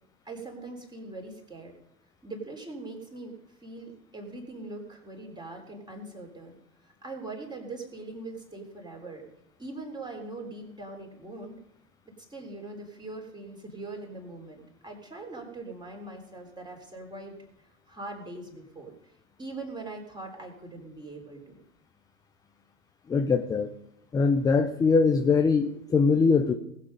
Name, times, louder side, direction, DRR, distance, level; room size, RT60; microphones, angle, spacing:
voice 1, 0.3-1.7 2.2-3.3 3.6-6.6 7.0-9.3 9.6-11.5 12.3-17.4 17.9-19.0 19.4-21.6, right 2 dB, 10° right, 2 dB, 3.6 m, -41 dB
voice 2, 23.1-23.7 24.1-26.5, left 4 dB, 10° left, 7 dB, 0.5 m, -22 dB
19.5 x 7.5 x 5.3 m, 0.79 s
hypercardioid pair, 100°, 42 cm